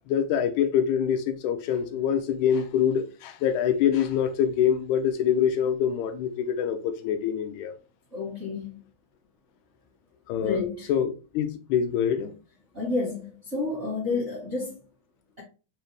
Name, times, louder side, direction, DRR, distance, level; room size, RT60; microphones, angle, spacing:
voice 1, 0.1-7.8 10.3-10.6 10.9-12.3, left 8 dB, 80° left, 1.9 m, -25 dB
voice 2, 8.1-8.8 10.4-10.9 12.7-14.8, left 3 dB, 40° right, 1.0 m, -30 dB
4.8 x 2.6 x 3.2 m
omnidirectional pair, 3.5 m